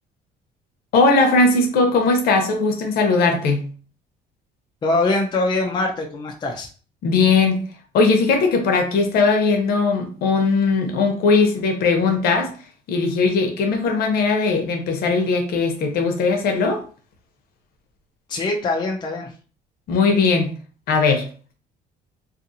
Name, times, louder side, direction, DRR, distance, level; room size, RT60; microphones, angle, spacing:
voice 1, 0.9-3.6 7.0-7.6 7.9-12.5 12.9-16.8 19.9-20.5 20.9-21.3, left 4 dB, 70° left, 4 dB, 0.8 m, -19 dB
voice 2, 4.8-6.7 18.3-19.3, left 2 dB, 25° left, 1 dB, 0.5 m, -23 dB
2.6 x 2.5 x 2.7 m, 0.40 s
cardioid pair, 130°, 16 cm